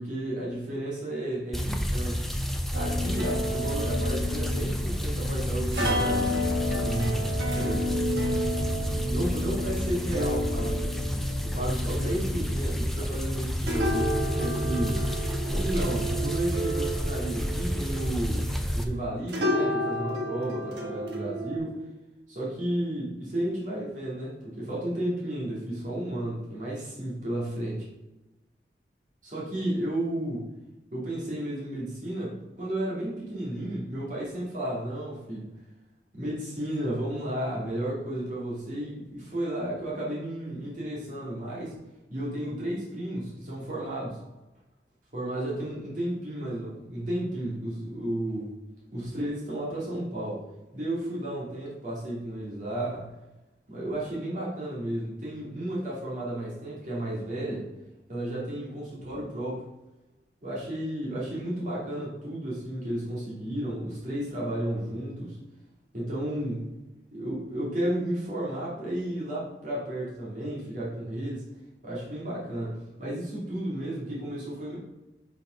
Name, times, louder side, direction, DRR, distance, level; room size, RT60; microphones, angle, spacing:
voice 1, 0.0-2.3 2.7-6.5 6.8-7.9 9.1-15.1 15.5-18.5 18.7-21.8 22.3-27.9 29.2-30.5 30.9-35.5 36.1-41.7 42.1-44.2 45.1-48.5 48.9-50.4 50.7-53.1 53.7-57.7 58.1-59.6 60.4-65.4 65.9-66.7 67.1-71.4 71.8-74.8, right 1 dB, 45° right, -7 dB, 2.5 m, -33 dB
sound 1, 1.5-18.8, equal, ahead, 0.5 m, -30 dB
sound 2, 2.7-19.0 19.3-21.6, equal, 75° right, 1.4 m, -32 dB
5.8 x 5.3 x 5.1 m, 1.0 s
head